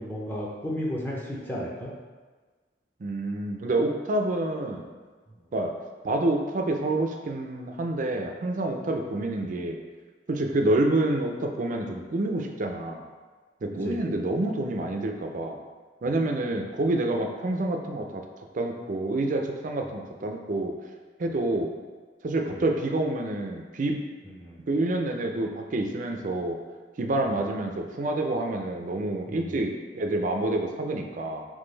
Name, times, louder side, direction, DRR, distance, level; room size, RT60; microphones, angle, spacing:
voice 1, 0.0-1.9 13.8-14.0 22.5-22.6 24.2-24.6 27.3-27.4 29.3-29.6, equal, 10° left, -4 dB, 0.6 m, -34 dB
voice 2, 3.0-4.9 5.5-5.7 6.0-9.8 10.3-13.0 13.6-15.6 16.0-18.2 18.5-20.7 21.2-21.7 22.2-24.0 24.7-26.6 27.0-31.5, right 2 dB, 50° right, 3 dB, 0.4 m, -28 dB
3.7 x 3.1 x 3.9 m, 1.4 s
head